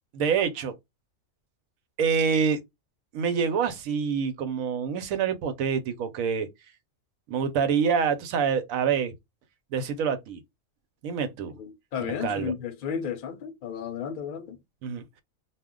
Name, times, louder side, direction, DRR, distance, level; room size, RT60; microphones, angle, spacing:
voice 1, 0.1-0.7 2.0-2.6 3.1-6.5 7.3-9.1 9.7-10.4 11.0-11.6 12.0-12.5 14.8-15.2, right 6 dB, 85° right, 1.0 m, -26 dB
voice 2, 11.6-14.6, left 7 dB, 70° left, 0.5 m, -33 dB
2.4 x 2.1 x 3.6 m
omnidirectional pair, 1.4 m